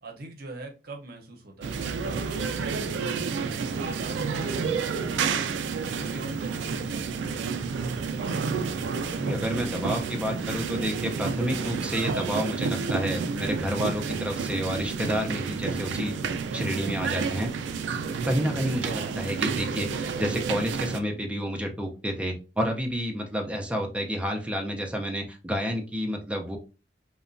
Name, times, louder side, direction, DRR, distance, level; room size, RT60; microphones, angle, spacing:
voice 1, 0.0-2.8 3.5-5.4 5.8-7.8, right 2 dB, 55° right, 2 dB, 0.7 m, -43 dB
sound 1, 1.6-21.0, right 5 dB, 75° right, 0.3 m, -30 dB
voice 2, 9.2-16.2 16.5-17.5 18.2-26.6, equal, 5° right, 2 dB, 0.5 m, -30 dB
2.9 x 2.1 x 2.5 m, 0.32 s
head